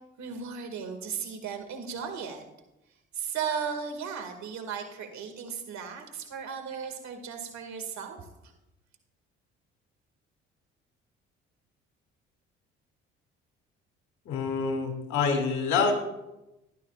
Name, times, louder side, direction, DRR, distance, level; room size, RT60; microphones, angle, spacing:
voice 1, 0.2-2.4 3.1-8.3, right 6 dB, 70° right, 5 dB, 2.1 m, -36 dB
voice 2, 14.3-15.9, left 5 dB, 70° left, 3 dB, 2.4 m, -26 dB
16.0 x 11.5 x 2.4 m, 0.93 s
hypercardioid pair, 60°, 29 cm